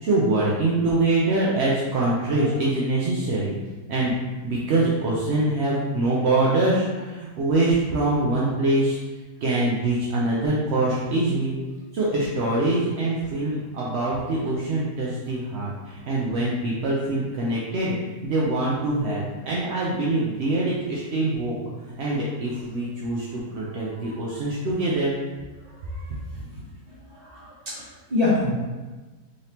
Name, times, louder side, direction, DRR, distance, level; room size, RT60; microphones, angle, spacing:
voice 1, 0.0-3.5 3.9-4.2 4.4-9.0 9.4-11.5 11.9-17.9 18.2-21.5 22.0-25.2, right 2 dB, 65° right, -6 dB, 0.6 m, -24 dB
voice 2, 25.6-26.6 27.1-28.5, left 3 dB, 25° right, -7 dB, 1.1 m, -29 dB
3.8 x 3.3 x 2.8 m, 1.3 s
omnidirectional pair, 1.8 m